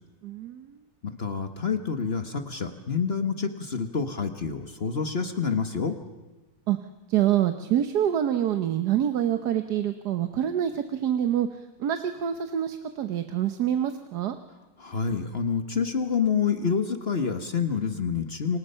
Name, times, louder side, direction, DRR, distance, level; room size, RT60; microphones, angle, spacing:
voice 1, 0.2-0.8 6.7-6.8 7.1-11.5 11.8-14.3, right 10 dB, 65° right, 8 dB, 1.4 m, -26 dB
voice 2, 1.0-5.9 14.8-18.6, left 6 dB, 35° left, 7 dB, 1.3 m, -28 dB
29.5 x 25.5 x 5.6 m, 1.2 s
omnidirectional pair, 2.0 m